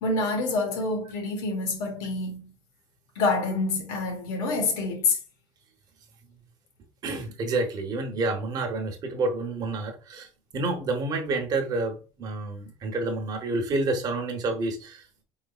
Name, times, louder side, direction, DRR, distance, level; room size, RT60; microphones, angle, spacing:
voice 1, 0.0-2.5 3.1-5.2, left 3 dB, 75° left, 1.3 m, -27 dB
voice 2, 7.0-10.3 10.5-15.0, right 2 dB, 30° right, 0.8 m, -29 dB
4.6 x 3.9 x 2.3 m
cardioid pair, 175°, 13 cm